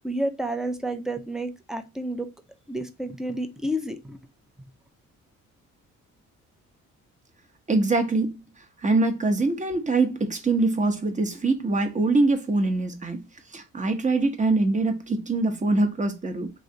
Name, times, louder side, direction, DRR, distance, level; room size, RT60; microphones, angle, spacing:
voice 1, 0.0-2.3 2.7-4.2, right 1 dB, ahead, 0.6 m, -30 dB
voice 2, 7.7-8.4 8.8-13.2 13.5-16.5, right 3 dB, 25° right, 0.9 m, -23 dB
3.1 x 2.7 x 3.9 m
cardioid pair, 90°, 30 cm